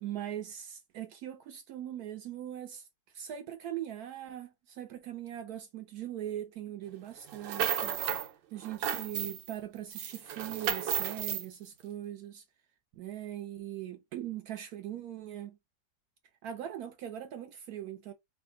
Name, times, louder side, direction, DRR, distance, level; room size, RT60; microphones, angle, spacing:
voice 1, 0.0-2.9 3.1-8.0 8.5-12.4 12.9-15.6 16.4-18.1, right 11 dB, 70° right, 0.9 m, -41 dB
sound 1, 7.3-8.3 8.6-9.5 9.9-11.4, right 10 dB, 90° right, 1.4 m, -33 dB
3.4 x 2.4 x 3.7 m
omnidirectional pair, 1.9 m